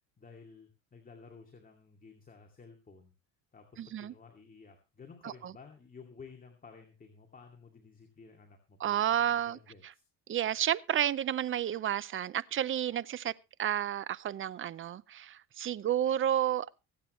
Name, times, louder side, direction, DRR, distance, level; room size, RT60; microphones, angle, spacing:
voice 1, 0.2-3.1 3.5-10.0, left 5 dB, 25° left, 2.4 m, -54 dB
voice 2, 3.8-4.1 5.2-5.5 8.8-9.6 10.3-13.3 13.6-16.8, right 10 dB, 35° right, 0.6 m, -31 dB
24.0 x 8.7 x 3.1 m
cardioid pair, 120°, 37 cm